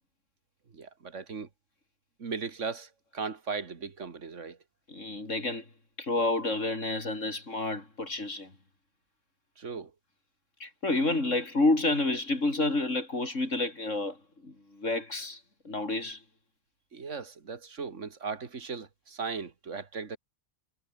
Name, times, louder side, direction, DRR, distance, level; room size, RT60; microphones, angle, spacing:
voice 1, 0.7-1.5 2.2-4.6 9.6-9.9 16.9-20.2, right 5 dB, 75° right, 2.3 m, -37 dB
voice 2, 4.9-5.7 6.0-8.5 10.6-16.2, left 2 dB, 90° left, 5.2 m, -29 dB
omnidirectional pair, 1.3 m